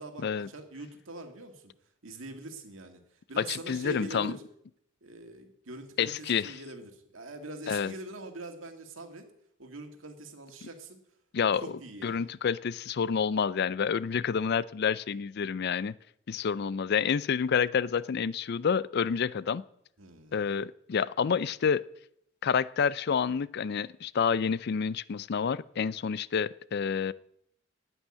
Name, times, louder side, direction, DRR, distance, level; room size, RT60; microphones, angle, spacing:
voice 1, 0.0-1.7 2.0-4.4 5.0-9.3 9.6-11.0 11.6-12.3 20.0-20.4, right 2 dB, 75° right, 5 dB, 2.1 m, -43 dB
voice 2, 3.5-4.3 6.0-6.5 7.7-7.9 11.3-11.7 12.0-15.9 16.3-19.6 20.3-21.8 22.4-27.1, left 6 dB, 55° left, 19 dB, 0.4 m, -28 dB
9.2 x 9.0 x 9.9 m, 0.74 s
head